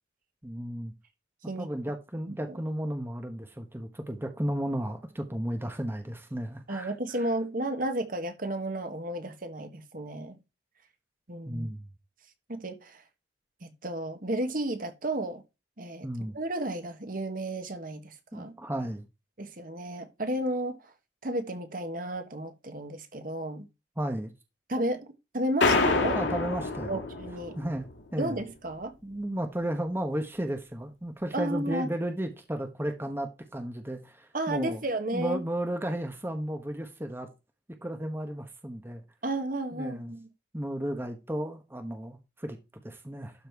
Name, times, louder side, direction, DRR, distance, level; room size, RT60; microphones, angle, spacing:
voice 1, 0.4-0.9 1.6-6.9 11.5-11.9 16.0-16.3 18.3-19.1 24.0-24.3 26.1-27.0 27.6-27.8 28.1-28.4 29.0-34.8 35.1-37.3 37.8-39.0 39.7-40.1 40.5-42.6 42.8-43.3, right 1 dB, 15° right, 1.0 m, -33 dB
voice 2, 6.7-10.4 11.3-11.7 12.5-13.0 13.6-15.4 15.8-16.1 16.3-18.5 19.4-20.9 21.2-23.7 24.7-26.2 26.9-27.6 28.2-28.9 31.3-31.9 34.3-35.4 39.2-40.3, right 1 dB, 50° right, 1.5 m, -33 dB
sound 1, 25.6-28.0, left 3 dB, 90° left, 1.9 m, -27 dB
12.0 x 4.3 x 4.6 m
head